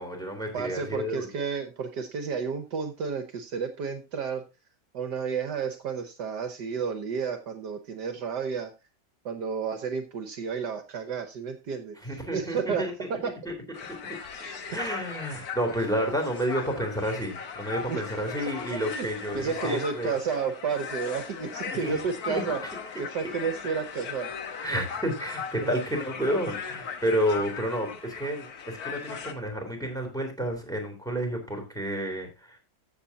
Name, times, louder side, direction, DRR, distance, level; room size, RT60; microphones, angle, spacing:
voice 1, 0.0-1.3 12.0-13.1 13.4-13.5 14.0-14.2 14.7-20.1 21.7-22.0 22.3-22.4 24.6-32.6, equal, ahead, 1 dB, 3.5 m, -30 dB
voice 2, 0.5-4.4 4.9-8.7 9.2-11.9 12.3-13.3 14.4-14.5 17.9-18.0 18.4-18.5 18.8-19.1 19.3-22.6 23.0-24.3 25.6-25.8, right 6 dB, 65° right, 7 dB, 1.6 m, -31 dB
sound 1, 13.7-29.3, left 6 dB, 55° left, 1.5 m, -38 dB
15.0 x 7.1 x 2.8 m, 0.27 s
omnidirectional pair, 2.0 m